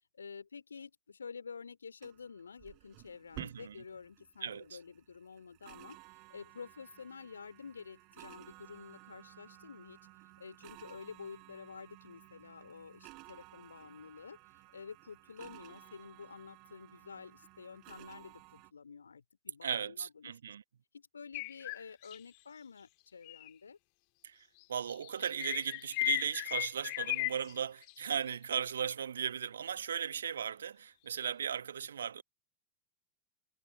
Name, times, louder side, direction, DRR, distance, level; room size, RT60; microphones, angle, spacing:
voice 1, 0.1-6.0 6.3-10.0 10.4-14.4 14.7-20.5 20.9-23.8 27.4-27.7, left 5 dB, 75° left, 3.3 m, -50 dB
sound 1, 2.0-18.7, right 27 dB, 40° right, 4.8 m, -55 dB
voice 2, 3.4-3.8 4.4-4.8 19.6-20.6 24.2-32.2, right 8 dB, 65° right, 1.2 m, -37 dB
sound 2, 21.3-22.2 23.3-23.5 24.8-27.5 27.8-28.1, left 40 dB or more, 45° left, 2.2 m, -36 dB
figure-of-eight pair, 90°, 0 cm